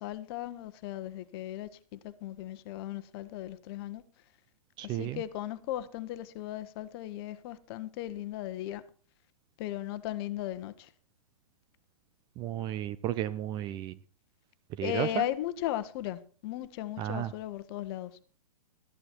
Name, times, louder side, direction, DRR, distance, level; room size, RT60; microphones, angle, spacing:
voice 1, 0.0-4.0 4.8-8.8 9.6-10.9 14.8-18.1, left 13 dB, 40° left, 1.1 m, -37 dB
voice 2, 4.8-5.2 12.4-13.9 14.8-15.3 17.0-17.3, right 12 dB, 25° right, 0.5 m, -33 dB
13.5 x 11.0 x 4.5 m
hypercardioid pair, 125°, 19 cm